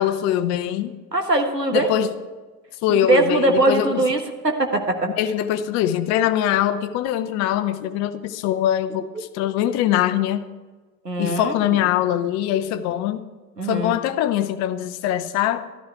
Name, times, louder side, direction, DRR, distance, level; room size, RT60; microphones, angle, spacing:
voice 1, 0.0-1.0 1.7-2.1 2.8-4.1 5.2-10.5 11.2-13.2 13.6-15.7, left 11 dB, 35° left, 11 dB, 0.8 m, -22 dB
voice 2, 1.1-1.9 3.1-5.1 11.0-11.5 13.6-13.9, right 2 dB, 90° right, 4 dB, 1.5 m, -21 dB
13.0 x 13.0 x 4.7 m, 1.3 s
figure-of-eight pair, 85°, 47 cm